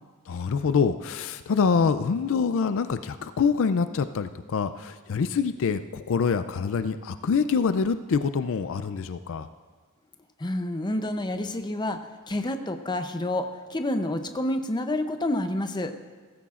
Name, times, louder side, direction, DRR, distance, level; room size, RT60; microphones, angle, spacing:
voice 1, 0.3-9.5, left 5 dB, 60° left, 11 dB, 0.4 m, -25 dB
voice 2, 10.4-12.0 12.3-15.9, left 1 dB, 20° left, 7 dB, 0.6 m, -28 dB
16.5 x 14.5 x 2.5 m, 1.5 s
head